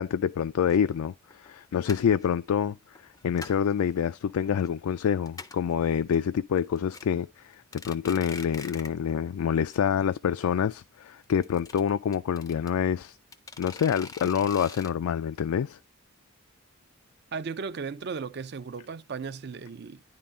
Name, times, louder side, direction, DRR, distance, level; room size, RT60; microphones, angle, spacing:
voice 1, 0.0-13.2 13.6-15.8, left 8 dB, 85° left, 0.3 m, -27 dB
sound 1, 0.7-0.8 1.3-1.5 1.8-2.3 2.9-3.7 4.1-4.7 5.0-5.1 5.3-5.7 6.1-6.2 6.6-7.0 7.5-9.0 9.3-9.4 9.7-9.8 10.1-10.2 11.2-12.7 13.3-14.9, left 4 dB, 15° left, 0.4 m, -43 dB
voice 2, 17.3-20.0, right 5 dB, 50° right, 0.4 m, -36 dB
10.0 x 3.8 x 4.2 m
head